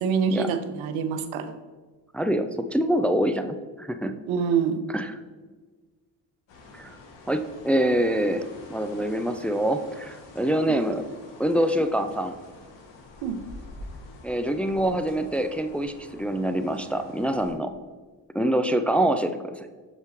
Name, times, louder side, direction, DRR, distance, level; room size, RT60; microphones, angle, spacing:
voice 1, 0.0-1.5 4.3-4.8 10.7-10.8 13.2-13.4, right 6 dB, 85° right, 10 dB, 0.6 m, -25 dB
voice 2, 2.1-4.1 4.9-5.1 6.7-7.0 7.3-8.4 8.7-11.0 11.4-12.4 14.2-17.7 18.3-19.7, right 1 dB, 5° left, 8 dB, 0.4 m, -25 dB
sound 1, 6.5-17.5, left 2 dB, 70° left, 1.5 m, -47 dB
6.6 x 5.0 x 3.1 m, 1.4 s
supercardioid pair, 45°, 47 cm